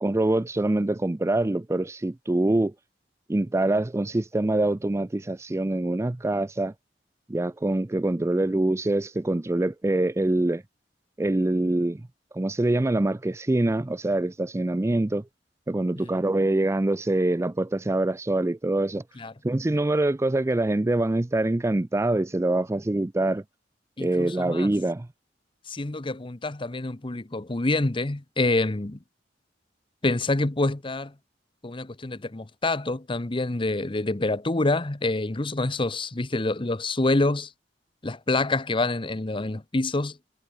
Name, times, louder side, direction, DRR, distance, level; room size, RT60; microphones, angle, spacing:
voice 1, 0.0-2.7 3.3-6.7 7.3-10.6 11.2-12.0 12.3-15.3 15.7-19.0 19.4-23.4 24.0-25.1, right 2 dB, 15° right, 0.4 m, -24 dB
voice 2, 24.0-24.7 25.7-29.0 30.0-31.1 31.6-37.5 38.0-40.2, left 2 dB, 30° left, 0.9 m, -27 dB
head